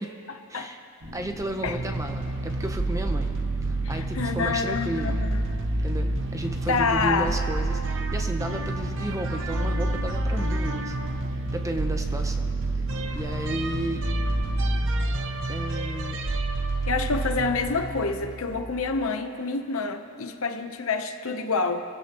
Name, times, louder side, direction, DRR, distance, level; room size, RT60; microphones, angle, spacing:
voice 1, 0.5-0.8 1.1-3.3 3.7-5.2 5.8-11.0 11.5-12.5 13.1-14.0 15.5-16.2, right 1 dB, 15° right, 5 dB, 0.8 m, -33 dB
Boat Water vehicle, 1.0-14.8, right 2 dB, 85° right, 5.3 m, -40 dB
sound 1, 1.7-19.0, right 2 dB, 60° right, 0.9 m, -28 dB
voice 2, 3.8-5.4 6.7-7.4 16.9-21.8, left 4 dB, 65° left, 7 dB, 0.9 m, -27 dB
27.0 x 16.0 x 3.0 m, 2.4 s
head